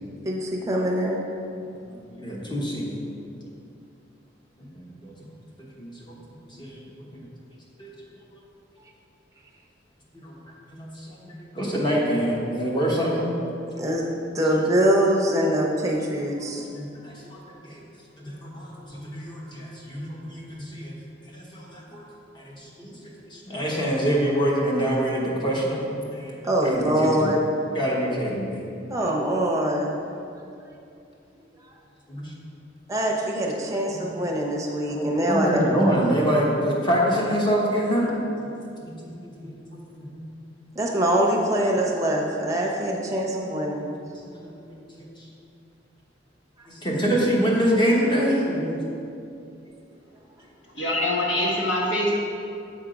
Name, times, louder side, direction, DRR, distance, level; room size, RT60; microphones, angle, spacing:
voice 1, 0.2-1.2 13.8-16.6 26.4-27.4 28.9-29.9 32.9-35.6 40.7-43.8, right 1 dB, 15° right, -2 dB, 0.7 m, -23 dB
voice 2, 2.1-3.0 4.7-5.1 5.6-5.9 6.5-7.2 7.8-7.9 10.1-10.3 10.7-13.3 16.4-17.8 18.2-20.9 21.3-22.0 22.4-26.3 26.6-27.3 27.7-28.6 32.1-32.3 33.9-34.0 34.9-38.2 38.8-40.3 44.3-44.5 45.0-45.1 46.8-48.9, equal, 25° left, -4 dB, 1.1 m, -26 dB
voice 3, 50.7-52.2, left 1 dB, 80° left, -4 dB, 1.6 m, -24 dB
7.8 x 3.6 x 5.0 m, 2.6 s
head